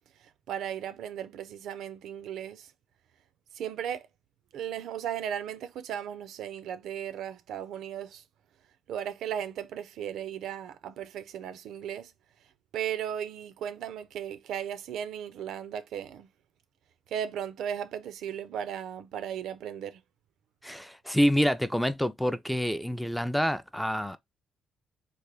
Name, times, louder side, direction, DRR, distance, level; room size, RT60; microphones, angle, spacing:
voice 1, 0.2-2.7 3.5-4.1 4.5-8.2 8.9-12.1 12.4-16.3 17.1-20.0, right 9 dB, 80° right, 0.4 m, -36 dB
voice 2, 20.6-24.2, equal, 5° left, 0.3 m, -27 dB
3.3 x 2.2 x 3.4 m
cardioid pair, 90°, 0 cm